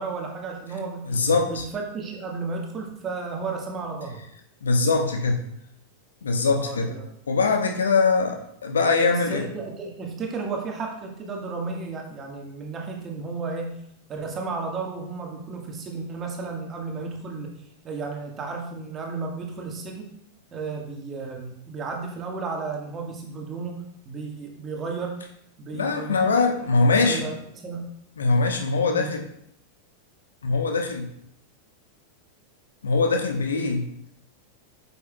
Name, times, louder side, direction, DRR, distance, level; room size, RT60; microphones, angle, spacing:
voice 1, 0.0-1.1 1.5-4.2 6.5-7.0 9.1-13.7 14.1-17.5 17.8-20.1 20.5-25.1 25.6-26.3 26.9-27.3 27.6-27.9 28.9-29.1, right 4 dB, 25° right, 1 dB, 1.6 m, -33 dB
voice 2, 1.1-1.6 4.6-5.4 6.2-7.0 7.3-9.5 25.7-27.3 28.2-29.3 30.4-31.1 32.8-33.8, left 4 dB, 70° left, 4 dB, 1.1 m, -22 dB
8.4 x 7.2 x 2.3 m, 0.72 s
figure-of-eight pair, 90°, 0 cm